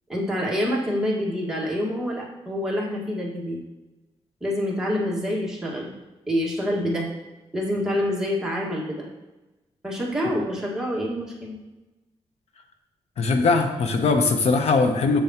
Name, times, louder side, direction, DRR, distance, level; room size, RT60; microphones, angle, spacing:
voice 1, 0.1-3.6 4.4-5.9 6.3-7.1 7.5-9.1 9.8-11.6, equal, 5° right, -4 dB, 1.7 m, -26 dB
voice 2, 13.2-15.2, left 3 dB, 85° left, 5 dB, 0.8 m, -20 dB
7.0 x 6.9 x 2.9 m, 1.1 s
wide cardioid pair, 130°, 11 cm